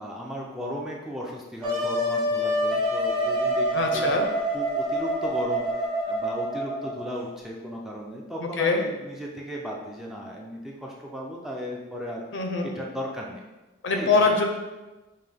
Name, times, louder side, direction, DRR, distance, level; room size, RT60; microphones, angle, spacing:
voice 1, 0.0-4.2 4.5-12.2 12.6-13.4 13.9-14.3, equal, ahead, -3 dB, 0.4 m, -36 dB
Wind instrument woodwind instrument, 1.6-7.1, equal, 30° right, 1.1 m, -26 dB
voice 2, 3.7-4.3 8.4-8.8 12.3-12.7 13.8-14.4, left 3 dB, 65° left, 2 dB, 0.6 m, -23 dB
5.4 x 2.2 x 3.4 m, 1.1 s
head